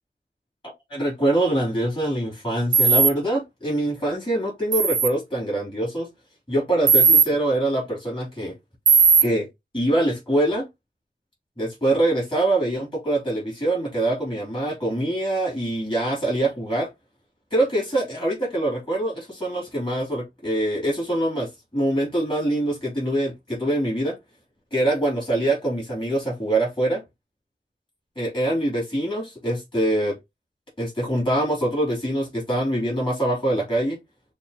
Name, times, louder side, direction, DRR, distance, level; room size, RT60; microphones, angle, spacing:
voice 1, 0.9-6.1 6.5-8.5 9.2-9.5 9.7-10.7 11.6-16.9 17.5-24.2 24.7-27.0 28.1-30.2 30.8-34.0, right 1 dB, 30° left, 3.1 m, -24 dB
sound 1, 2.7-3.1 4.7-5.1 6.9-7.3 8.9-9.2, right 6 dB, 85° right, 0.5 m, -16 dB
6.9 x 2.4 x 2.9 m
wide cardioid pair, 70°, 18 cm